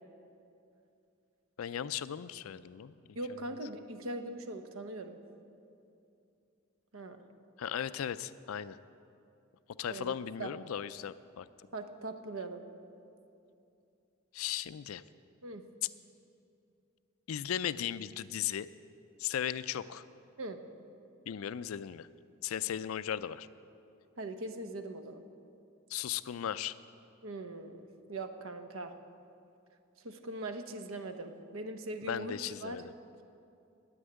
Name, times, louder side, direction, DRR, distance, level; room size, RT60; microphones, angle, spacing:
voice 1, 1.6-2.9 7.6-8.8 9.8-11.5 14.3-15.0 17.3-18.7 19.2-20.0 21.3-22.1 22.4-23.5 25.9-26.8 32.1-32.9, left 9 dB, 85° left, 15 dB, 0.4 m, -36 dB
voice 2, 3.1-5.2 6.9-7.2 9.9-10.1 10.4-10.5 11.7-12.6 15.4-15.6 20.4-20.6 24.2-25.2 27.2-28.9 30.0-32.8, right 2 dB, 80° right, 7 dB, 0.9 m, -41 dB
9.9 x 8.7 x 9.2 m, 2.6 s
head